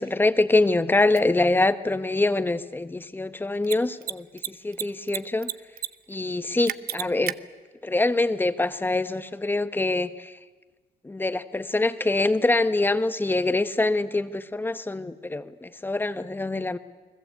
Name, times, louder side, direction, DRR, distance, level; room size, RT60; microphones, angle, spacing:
voice 1, 0.0-5.5 6.1-7.4 7.8-10.3 11.0-16.8, left 2 dB, 10° left, 11 dB, 1.2 m, -24 dB
Mechanisms, 1.1-1.2 3.6-3.8 4.0-4.1 4.4-5.2 5.4-5.9 6.1-6.2 6.7-7.3, right 13 dB, 65° right, 0.8 m, -30 dB
30.0 x 20.5 x 8.2 m, 1.2 s
cardioid pair, 110°, 17 cm